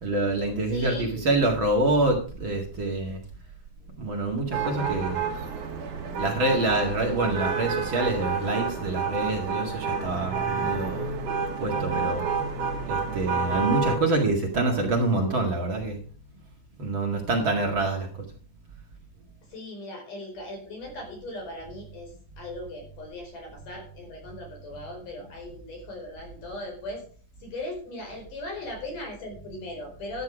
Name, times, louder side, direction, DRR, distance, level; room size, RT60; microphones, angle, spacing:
voice 1, 0.0-3.2 4.0-5.2 6.2-11.1 11.6-12.2 12.9-16.0 16.8-18.1, right 2 dB, 40° right, 1 dB, 2.4 m, -26 dB
voice 2, 0.7-1.4 19.5-27.0 27.4-30.2, left 1 dB, 75° left, 2 dB, 6.2 m, -38 dB
sound 1, 4.5-14.0, right 5 dB, 70° right, 3.4 m, -29 dB
12.5 x 9.6 x 4.9 m, 0.43 s
omnidirectional pair, 3.7 m